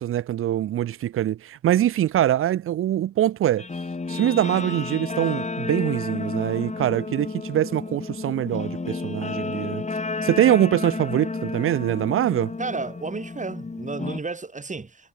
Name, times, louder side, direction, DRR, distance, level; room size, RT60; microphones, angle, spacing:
voice 1, 0.0-3.7 4.1-9.8 10.2-12.5, right 12 dB, 90° right, 1.9 m, -23 dB
Guitar, 3.6-14.2, left 3 dB, 35° left, 4.2 m, -31 dB
voice 2, 12.6-15.1, right 3 dB, 35° right, 7.0 m, -32 dB
cardioid pair, 60°, 21 cm